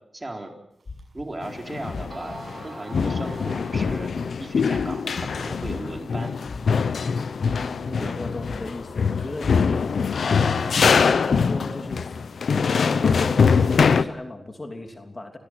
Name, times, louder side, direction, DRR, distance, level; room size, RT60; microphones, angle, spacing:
voice 1, 0.1-0.5 1.1-2.4 2.6-4.1 4.4-6.3 8.0-8.1, right 2 dB, 25° right, 3 dB, 4.1 m, -36 dB
sound 1, 0.9-1.3 1.9-2.3 2.9-3.4 3.8-4.2 4.7-5.1 5.6-6.0 6.4-7.1 7.4-7.9 8.4-8.9 9.4-9.8, left 4 dB, 60° left, 4.3 m, -37 dB
sound 2, 1.0-1.1 1.8-1.9 2.1-4.6, right 2 dB, 55° right, 6.7 m, -42 dB
sound 3, 1.4-2.6 2.9-14.0, left 5 dB, 80° left, 0.9 m, -23 dB
voice 2, 7.8-10.0 10.3-12.1 12.5-15.4, left 2 dB, 35° left, 4 dB, 3.2 m, -37 dB
28.5 x 17.5 x 6.2 m, 0.74 s
cardioid pair, 55°, 0 cm